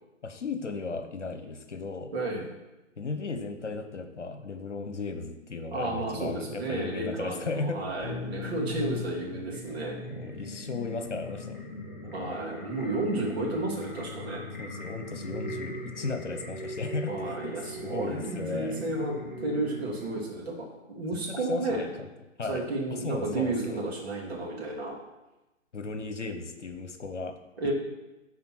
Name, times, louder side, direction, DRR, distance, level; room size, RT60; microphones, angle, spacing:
voice 1, 0.2-2.1 3.0-7.8 10.1-11.6 12.0-12.3 14.6-18.8 21.3-22.1 22.4-22.6 23.0-23.8 25.7-27.4, left 3 dB, 65° left, 7 dB, 1.1 m, -36 dB
voice 2, 2.1-2.5 5.7-10.0 12.1-14.4 17.1-19.2 19.4-21.9 22.5-25.0 27.6-27.7, right 2 dB, 50° right, -3 dB, 2.6 m, -32 dB
sound 1, 8.0-20.2, left 1 dB, 15° left, 0.5 m, -39 dB
11.0 x 4.3 x 4.5 m, 1.0 s
figure-of-eight pair, 130°, 39 cm